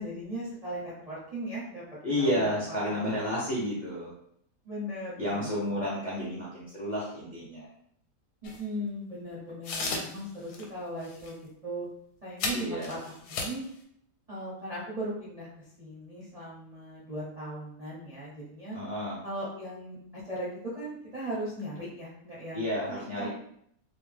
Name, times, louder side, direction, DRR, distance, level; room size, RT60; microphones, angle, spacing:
voice 1, 0.0-3.1 4.6-5.8 8.4-11.9 12.2-13.6 14.3-18.8 19.2-23.3, right 1 dB, 50° right, -8 dB, 0.4 m, -38 dB
voice 2, 2.0-4.1 5.2-7.7 12.5-13.0 18.7-19.2 22.5-23.3, equal, 55° left, -7 dB, 0.5 m, -31 dB
sound 1, 8.4-8.6 9.6-10.2 10.5-10.6 11.0-11.3 12.4-13.6, left 3 dB, 75° left, 1.1 m, -34 dB
2.8 x 2.1 x 3.2 m, 0.69 s
omnidirectional pair, 1.8 m